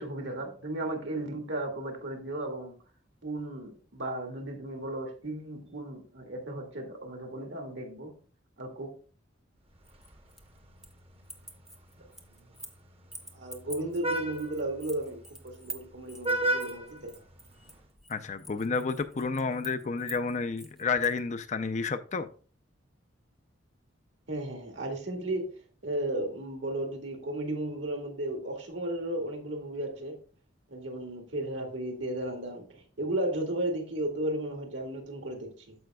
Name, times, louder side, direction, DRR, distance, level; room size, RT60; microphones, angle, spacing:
voice 1, 0.0-2.7 3.2-8.1 8.6-8.9 13.3-17.2 24.3-25.5 25.8-30.2 30.7-35.7, right 1 dB, 70° right, 1.9 m, -34 dB
Vehicle horn car horn honking, 9.7-17.9, right 1 dB, 30° right, 0.9 m, -37 dB
sound 1, 9.8-11.0 11.2-12.8 13.1-21.2, right 2 dB, ahead, 0.8 m, -47 dB
voice 2, 18.1-22.3, left 4 dB, 35° left, 0.5 m, -30 dB
14.0 x 5.1 x 2.3 m
head